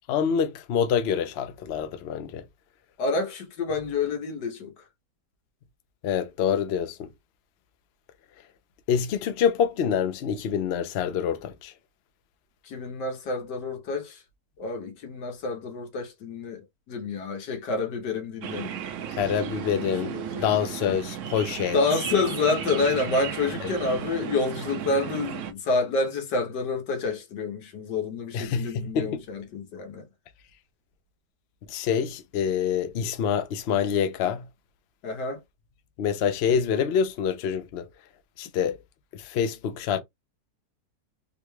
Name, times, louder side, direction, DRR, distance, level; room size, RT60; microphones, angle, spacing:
voice 1, 0.1-2.4 6.0-7.1 8.9-11.7 19.1-21.8 23.6-23.7 28.3-29.2 31.7-34.5 36.0-37.9 38.4-38.8 39.1-40.0, left 7 dB, 65° left, 0.6 m, -26 dB
voice 2, 3.0-4.7 12.6-14.2 14.6-19.1 19.7-20.4 21.7-30.1 35.0-35.4, left 3 dB, 85° left, 1.6 m, -28 dB
sound 1, 18.4-25.5, right 9 dB, 65° right, 0.7 m, -34 dB
3.6 x 2.2 x 3.1 m
omnidirectional pair, 1.8 m